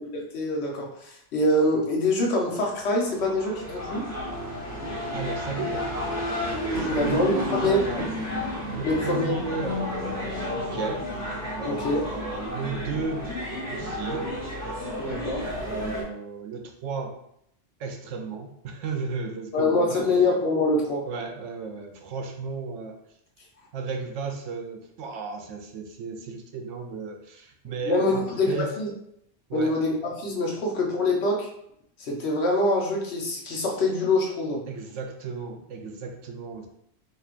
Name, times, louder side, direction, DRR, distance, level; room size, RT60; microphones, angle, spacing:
voice 1, 0.1-4.1 6.9-7.8 8.8-9.4 11.6-12.0 15.0-15.4 19.5-21.0 27.8-28.9 29.5-31.5 32.0-34.6, left 2 dB, 65° left, -1 dB, 1.1 m, -25 dB
sound 1, 2.5-16.0, left 1 dB, 15° left, 0.9 m, -31 dB
voice 2, 5.1-5.9 6.7-8.2 8.7-11.1 11.6-13.3 13.7-14.3 15.5-17.1 17.8-20.0 21.1-23.0 23.7-28.8 29.5-29.8 34.7-36.7, right 4 dB, 85° right, 4 dB, 1.0 m, -34 dB
4.4 x 2.9 x 2.4 m, 0.74 s
omnidirectional pair, 1.2 m